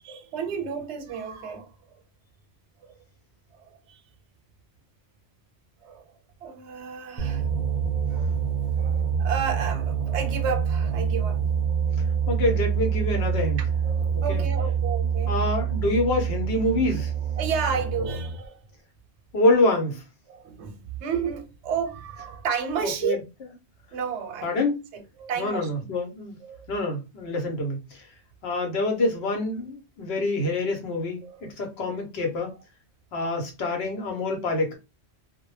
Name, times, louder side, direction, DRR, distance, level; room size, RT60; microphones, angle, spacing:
voice 1, 0.0-1.7 2.9-3.0 3.7-4.0 5.8-6.1 6.4-7.5 8.1-8.4 8.7-11.4 13.8-15.4 17.4-18.6 20.3-23.2 23.9-24.5 24.9-25.7 26.4-26.7 31.2-31.5, right 6 dB, 90° right, 0.9 m, -32 dB
sound 1, 7.2-18.5, right 7 dB, 50° right, 0.5 m, -26 dB
voice 2, 12.3-13.6 14.3-14.4 15.3-17.1 19.3-20.0 22.8-23.2 24.4-24.7 25.4-26.4 26.7-28.0 28.4-31.2 31.6-32.5 33.1-34.7, left 2 dB, 70° left, 1.0 m, -26 dB
2.2 x 2.1 x 3.1 m
omnidirectional pair, 1.1 m